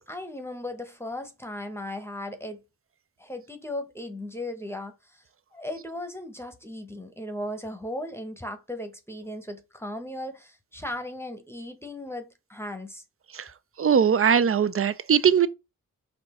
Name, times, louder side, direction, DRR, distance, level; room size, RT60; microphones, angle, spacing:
voice 1, 0.0-2.6 3.2-5.2 5.5-13.0, left 1 dB, 5° left, 0.9 m, -37 dB
voice 2, 13.8-15.5, right 7 dB, 40° right, 0.5 m, -20 dB
4.3 x 2.5 x 4.2 m
cardioid pair, 55°, 35 cm